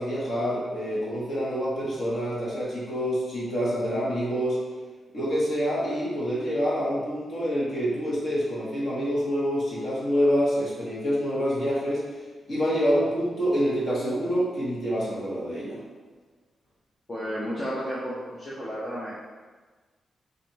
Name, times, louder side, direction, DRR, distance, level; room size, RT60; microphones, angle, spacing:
voice 1, 0.0-4.6 5.1-12.0 12.5-15.8, equal, 40° left, -7 dB, 1.4 m, -26 dB
voice 2, 17.1-19.1, equal, 20° left, -7 dB, 0.6 m, -32 dB
4.2 x 2.6 x 4.5 m, 1.4 s
wide cardioid pair, 165°, 0 cm